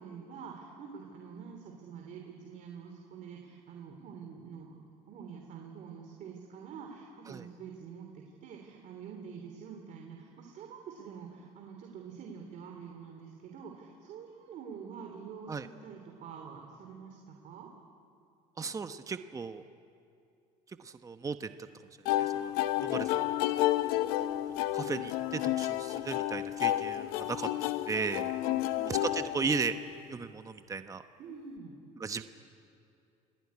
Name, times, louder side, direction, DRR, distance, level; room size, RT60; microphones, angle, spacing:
voice 1, 0.0-4.8 5.1-17.7 28.4-29.0 31.2-31.7, right 6 dB, 60° right, 2 dB, 3.3 m, -46 dB
voice 2, 18.6-19.6 20.8-21.5 22.2-23.2 24.7-27.5 27.9-28.3 28.9-29.7 30.1-31.0 32.0-32.2, right 5 dB, 20° right, 9 dB, 1.0 m, -36 dB
sound 1, 22.1-30.0, left 14 dB, 90° left, 0.8 m, -31 dB
27.5 x 18.0 x 9.7 m, 2.6 s
cardioid pair, 105°, 15 cm